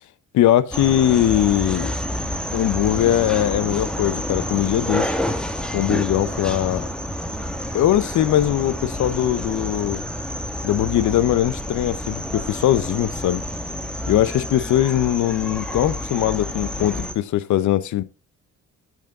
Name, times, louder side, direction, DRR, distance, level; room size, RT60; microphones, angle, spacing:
voice 1, 0.3-1.9 2.5-5.2 5.7-6.8 7.7-10.0 10.6-13.4 14.1-18.0, left 12 dB, 75° left, 0.8 m, -20 dB
sound 1, 0.7-17.1, equal, 5° left, 1.7 m, -29 dB
10.5 x 6.5 x 3.7 m
cardioid pair, 90°, 30 cm